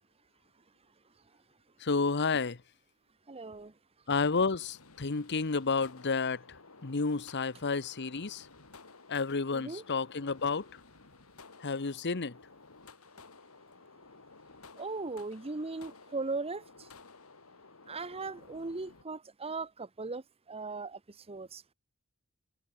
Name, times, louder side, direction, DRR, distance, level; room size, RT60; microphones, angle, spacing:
voice 1, 1.8-2.6 4.1-8.5 9.1-10.7 11.6-12.4, left 4 dB, 55° left, 1.0 m, -31 dB
voice 2, 3.3-3.7 9.5-9.8 14.8-16.6 17.9-20.2 20.5-21.0 21.3-21.7, right 3 dB, 30° right, 0.9 m, -38 dB
sound 1, 4.6-19.0, left 4 dB, 90° left, 2.6 m, -55 dB
head